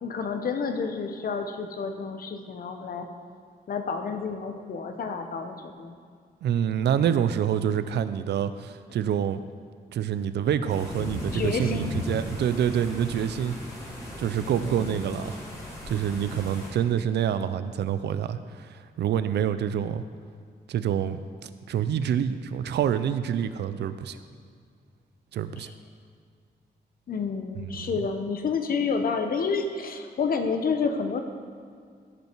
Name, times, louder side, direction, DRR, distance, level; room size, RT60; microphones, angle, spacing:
voice 1, 0.0-3.1 3.7-5.9 11.3-11.9 14.6-15.1 25.6-25.7 27.1-31.2, left 5 dB, 60° left, 6 dB, 0.9 m, -29 dB
voice 2, 6.4-9.4 9.9-13.6 14.2-15.4 15.9-18.7 19.0-20.0 20.7-21.2 21.7-24.2 25.3-25.7 27.8-27.9, right 9 dB, 85° right, 12 dB, 0.5 m, -26 dB
sound 1, 10.7-16.7, left 1 dB, 20° left, 2.6 m, -37 dB
15.0 x 5.5 x 4.6 m, 2.1 s
cardioid pair, 110°, 17 cm